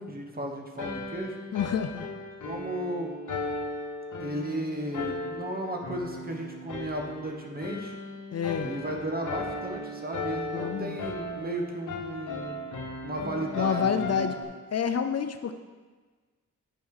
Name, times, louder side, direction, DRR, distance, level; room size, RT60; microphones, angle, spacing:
voice 1, 0.0-1.4 2.4-3.2 4.2-7.9 8.6-12.6 13.0-14.3, right 1 dB, 30° right, 2 dB, 1.1 m, -34 dB
sound 1, 0.8-14.4, left 2 dB, 70° left, 1.1 m, -37 dB
voice 2, 1.5-2.1 8.3-8.7 10.5-11.0 13.5-14.4 14.7-15.5, left 7 dB, 55° left, 8 dB, 0.5 m, -28 dB
8.9 x 5.4 x 4.8 m, 1.4 s
wide cardioid pair, 95°, 31 cm